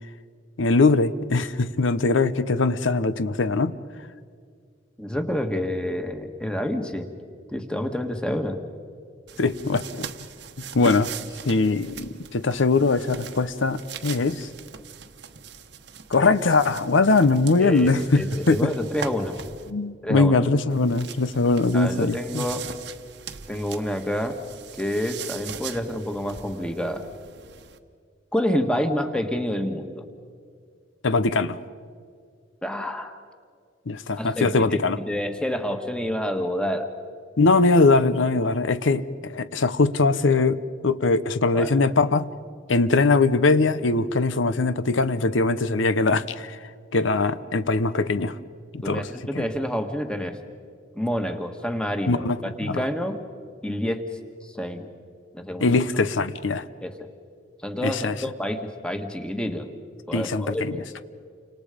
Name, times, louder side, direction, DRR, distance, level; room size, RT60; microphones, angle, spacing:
voice 1, 0.6-3.8 9.4-10.1 10.7-11.1 11.5-14.5 16.1-18.7 19.7-22.5 31.0-31.6 33.9-35.0 37.4-42.3 42.7-46.6 46.9-48.4 48.7-49.1 49.3-49.5 52.1-52.8 55.6-56.7 57.8-58.2 60.1-60.8, left 3 dB, 90° left, 14 dB, 0.8 m, -21 dB
voice 2, 5.0-7.1 7.5-8.6 17.6-19.4 20.0-20.4 21.7-22.7 23.5-24.4 24.8-27.1 28.3-30.0 32.6-33.2 34.2-36.9 41.5-41.7 48.8-50.4 50.9-53.2 53.6-54.0 54.4-54.9 55.3-55.7 56.8-56.9 57.6-59.7 60.1-60.9, equal, 5° left, 6 dB, 1.5 m, -28 dB
sound 1, 9.3-19.7 20.7-27.8, right 6 dB, 65° right, 1.1 m, -40 dB
30.0 x 26.0 x 5.1 m, 2.1 s
head